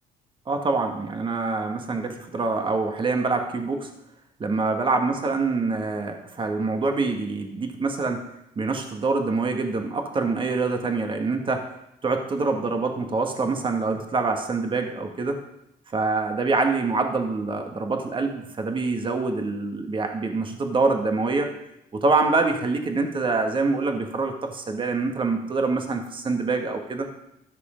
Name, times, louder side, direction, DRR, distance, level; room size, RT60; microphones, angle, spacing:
voice 1, 0.5-3.9 4.4-8.2 8.5-11.7 12.0-15.4 15.9-21.5 21.9-27.1, right 3 dB, 30° right, 4 dB, 1.6 m, -25 dB
13.0 x 6.6 x 5.1 m, 0.82 s
cardioid pair, 110°, 17 cm